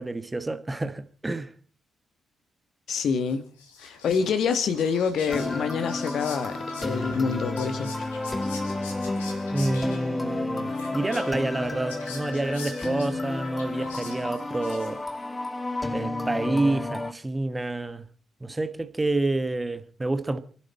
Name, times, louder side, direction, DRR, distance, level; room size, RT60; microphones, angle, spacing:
voice 1, 0.0-1.5 9.5-15.0 15.9-18.0 18.4-20.4, right 2 dB, 20° right, 1.3 m, -28 dB
voice 2, 2.9-3.4 3.8-8.1, left 6 dB, 55° left, 1.8 m, -27 dB
Whispering, 3.3-15.2, left 4 dB, 80° left, 2.7 m, -45 dB
sound 1, 5.3-17.1, left 2 dB, 20° left, 1.4 m, -31 dB
29.5 x 11.0 x 4.3 m
figure-of-eight pair, 40°, 0 cm